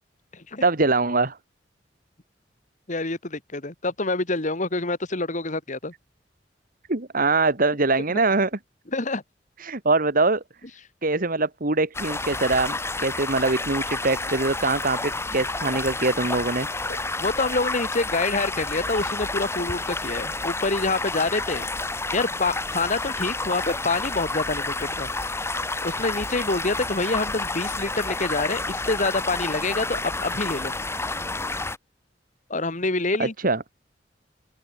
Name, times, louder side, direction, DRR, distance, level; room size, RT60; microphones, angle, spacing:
voice 1, 0.6-1.4 6.9-8.5 9.6-10.4 11.0-16.7 33.4-33.6, right 3 dB, 50° right, 2.0 m, -23 dB
voice 2, 2.9-5.9 8.1-8.2 8.9-9.2 17.2-21.7 22.1-25.1 25.8-30.7 32.5-33.3, left 3 dB, 45° left, 2.4 m, -26 dB
sound 1, 11.9-31.8, left 2 dB, 15° left, 2.1 m, -30 dB
open air
head